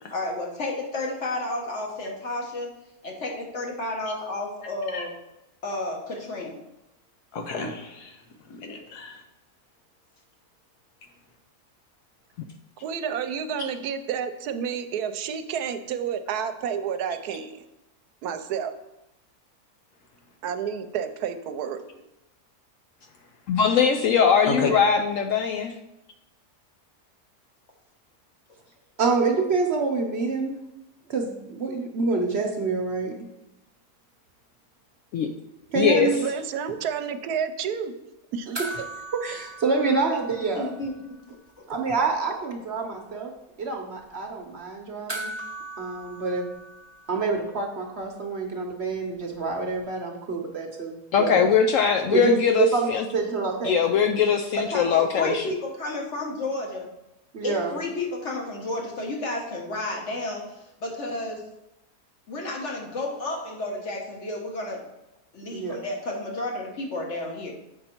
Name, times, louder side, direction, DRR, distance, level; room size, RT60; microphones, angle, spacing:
voice 1, 0.1-2.7 3.0-5.1 5.6-6.6 40.5-40.9 41.3-41.4 54.5-56.9 57.4-61.5 62.3-64.9 65.3-67.5, left 2 dB, 50° left, 0 dB, 1.5 m, -32 dB
voice 2, 7.3-8.2 8.5-9.2 13.6-13.7 24.5-24.7, left 4 dB, 85° left, 3 dB, 1.6 m, -31 dB
voice 3, 12.8-17.6 18.2-18.8 20.4-21.8 36.1-38.0 38.3-38.5, right 7 dB, 80° right, 9 dB, 1.1 m, -30 dB
voice 4, 23.5-25.7 35.1-35.3 35.7-36.1 51.1-53.0 53.6-55.4, left 7 dB, 70° left, 4 dB, 0.8 m, -21 dB
voice 5, 29.0-30.6 31.1-33.1 35.7-36.2 38.5-38.6 39.2-40.7 41.7-43.3 43.6-45.4 45.8-46.4 47.1-51.4 52.1-53.9 57.3-57.8 65.5-65.8, right 4 dB, 50° right, 3 dB, 1.0 m, -26 dB
sound 1, 38.5-41.2 41.5-41.6 45.1-47.7 49.8-49.9, right 2 dB, 20° right, 0.8 m, -39 dB
7.5 x 5.3 x 4.4 m, 0.93 s
omnidirectional pair, 1.7 m